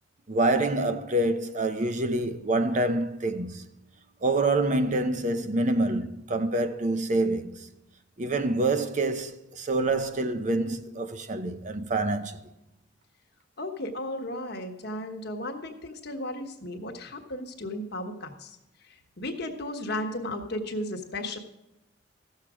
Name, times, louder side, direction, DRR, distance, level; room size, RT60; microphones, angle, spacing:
voice 1, 0.3-3.6 4.2-7.6 8.2-12.4, right 2 dB, 40° right, 0.7 m, -26 dB
voice 2, 13.6-18.6 19.2-21.4, left 1 dB, 60° left, 1.3 m, -34 dB
15.0 x 6.6 x 4.9 m
head